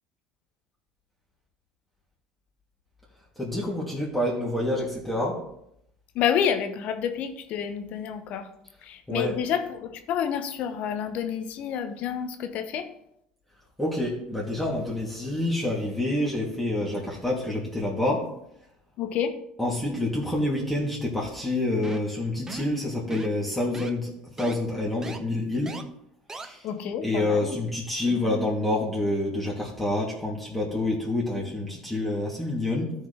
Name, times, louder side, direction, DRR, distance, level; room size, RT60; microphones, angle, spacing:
voice 1, 3.4-5.4 9.1-9.4 13.8-18.3 19.6-24.1 24.4-25.8 26.4-26.6 27.0-32.9, left 1 dB, 5° left, -5 dB, 2.9 m, -27 dB
voice 2, 6.1-8.5 8.8-12.9 19.0-19.3 26.6-27.6 28.1-28.2, left 8 dB, 60° left, 8 dB, 1.0 m, -29 dB
sound 1, 21.8-22.1 22.5-22.7 23.1-23.4 23.7-23.9 24.4-24.5 25.0-25.2 25.7-25.8 26.3-26.5, right 3 dB, 20° right, 0.9 m, -38 dB
13.0 x 5.1 x 4.3 m, 0.77 s
hypercardioid pair, 80°, 3 cm